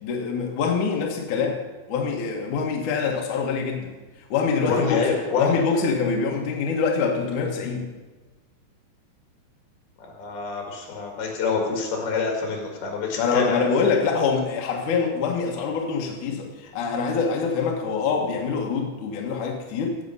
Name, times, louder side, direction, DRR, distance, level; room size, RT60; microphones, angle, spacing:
voice 1, 0.0-1.6 1.9-3.9 4.3-5.1 5.4-7.9 13.2-20.0, left 5 dB, 60° left, 0 dB, 2.5 m, -25 dB
voice 2, 4.6-5.5 10.0-13.6, left 4 dB, 80° left, 1 dB, 4.0 m, -26 dB
15.5 x 7.4 x 5.5 m, 1.2 s
omnidirectional pair, 4.4 m